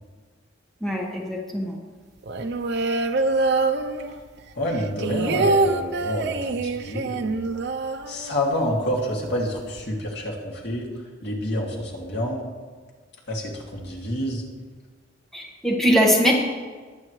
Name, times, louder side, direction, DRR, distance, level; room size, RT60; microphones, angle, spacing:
voice 1, 0.8-1.8 15.3-16.3, equal, ahead, -2 dB, 1.5 m, -21 dB
sound 1, 2.2-4.4 4.7-8.7 8.9-9.0 9.3-9.8, right 3 dB, 60° right, 0.7 m, -25 dB
voice 2, 4.6-7.4 8.1-10.9 11.2-12.4 13.3-14.4, equal, 60° left, -2 dB, 2.5 m, -28 dB
21.0 x 8.6 x 3.2 m, 1.5 s
head